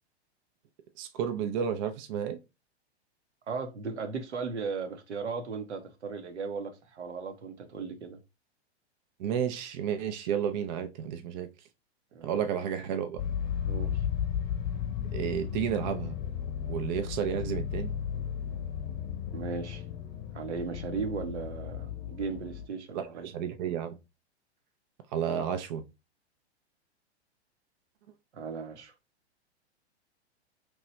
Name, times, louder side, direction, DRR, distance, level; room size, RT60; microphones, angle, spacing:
voice 1, 1.0-2.4 9.2-11.5 12.2-13.2 15.1-16.2 16.7-17.9 22.9-24.0 25.1-25.8, right 8 dB, 45° right, 0.4 m, -31 dB
voice 2, 3.5-8.2 12.1-12.3 13.7-14.0 19.3-19.8 20.3-23.3 28.3-28.9, right 5 dB, 80° right, 0.7 m, -36 dB
sound 1, 13.2-22.7, left 9 dB, 40° left, 0.7 m, -34 dB
3.0 x 2.2 x 2.9 m
figure-of-eight pair, 105°, 34 cm